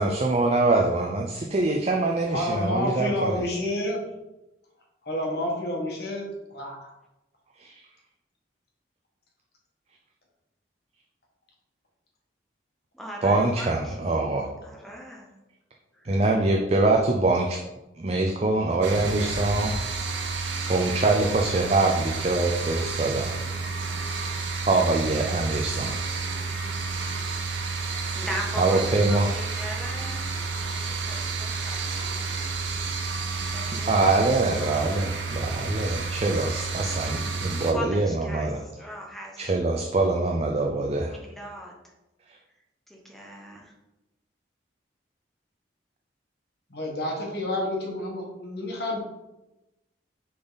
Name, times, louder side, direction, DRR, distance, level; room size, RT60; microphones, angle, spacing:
voice 1, 0.0-3.4 7.6-7.7 13.2-14.5 16.0-17.6 18.0-19.7 20.4-23.3 24.2-24.4 24.7-26.0 28.6-29.3 33.9-38.6 39.4-41.2, right 2 dB, 35° right, 2 dB, 0.5 m, -24 dB
voice 2, 2.3-4.0 5.0-6.2 6.5-6.9 46.7-49.0, left 1 dB, 55° left, 0 dB, 1.5 m, -29 dB
voice 3, 12.9-15.3 16.0-16.5 28.1-32.7 33.4-35.1 37.6-40.2 41.0-41.7 42.9-43.7, equal, ahead, -1 dB, 1.0 m, -40 dB
sound 1, 18.8-37.7, right 4 dB, 85° right, 0.8 m, -30 dB
6.6 x 4.0 x 4.0 m, 0.98 s
head